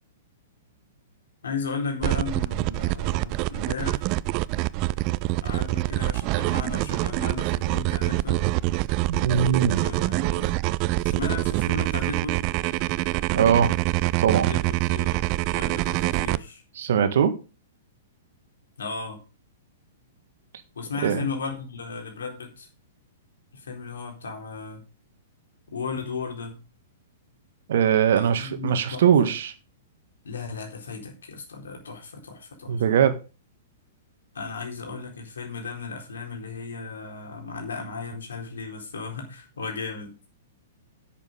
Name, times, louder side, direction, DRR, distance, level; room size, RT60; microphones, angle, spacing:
voice 1, 1.4-4.0 5.4-8.5 9.7-10.5 11.0-12.4 14.5-16.6 18.8-19.2 20.7-22.7 23.5-24.8 25.7-26.6 28.2-29.3 30.2-32.8 34.3-40.1, left 4 dB, 70° left, 4.1 m, -35 dB
sound 1, 2.0-16.4, right 18 dB, 35° right, 0.4 m, -25 dB
voice 2, 9.1-9.8 13.3-13.7 14.2-14.5 16.7-17.3 21.0-21.3 27.7-29.5 32.7-33.2, right 8 dB, 55° right, 1.6 m, -21 dB
11.0 x 7.6 x 5.1 m
figure-of-eight pair, 105°, 0 cm